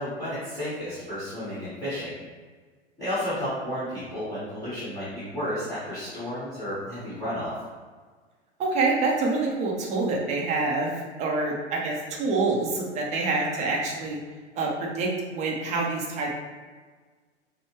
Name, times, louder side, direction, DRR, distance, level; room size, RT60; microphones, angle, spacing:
voice 1, 0.0-2.1 3.0-7.5, equal, 10° left, -13 dB, 1.5 m, -32 dB
voice 2, 8.6-14.2 14.6-16.3, right 3 dB, 20° right, -2 dB, 0.7 m, -26 dB
5.2 x 2.2 x 3.1 m, 1.5 s
figure-of-eight pair, 100°, 35 cm